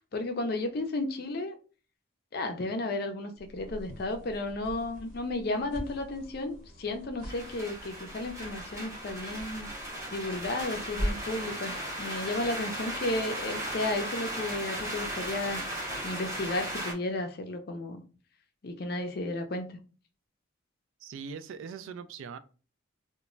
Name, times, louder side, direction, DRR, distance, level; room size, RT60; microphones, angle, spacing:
voice 1, 0.1-1.5 2.3-9.7 10.1-15.6 16.0-18.0 18.6-19.8, left 2 dB, 50° left, 0.4 m, -33 dB
sound 1, 3.4-11.4, equal, 40° right, 0.9 m, -41 dB
sound 2, 7.3-16.9, right 1 dB, 15° right, 0.6 m, -37 dB
voice 2, 21.0-22.4, right 6 dB, 75° right, 0.3 m, -41 dB
2.2 x 2.0 x 3.7 m
head